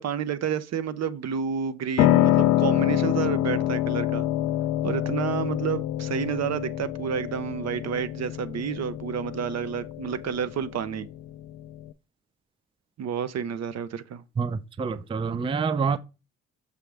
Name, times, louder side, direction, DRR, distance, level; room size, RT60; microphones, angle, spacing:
voice 1, 0.0-4.3 4.8-11.1 13.0-14.2, right 8 dB, 60° right, 0.8 m, -30 dB
Piano, 2.0-11.9, left 14 dB, 85° left, 0.5 m, -26 dB
voice 2, 14.4-16.0, right 5 dB, 20° right, 0.4 m, -27 dB
6.7 x 6.2 x 3.4 m
cardioid pair, 90°, 30 cm